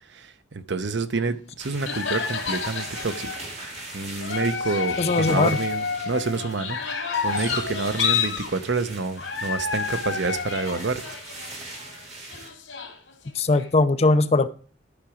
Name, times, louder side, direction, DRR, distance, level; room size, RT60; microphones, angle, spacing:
voice 1, 0.1-11.0, right 3 dB, 65° right, 11 dB, 0.8 m, -28 dB
sound 1, 1.1-1.2 1.9-3.5 4.2-8.5 9.2-12.0 12.3-13.7, left 6 dB, 85° left, 2.2 m, -29 dB
sound 2, 1.6-12.5, right 2 dB, 35° right, 2.7 m, -40 dB
voice 2, 5.0-5.6 13.4-14.5, left 3 dB, 35° left, 12 dB, 0.5 m, -20 dB
12.0 x 6.0 x 5.0 m, 0.42 s
head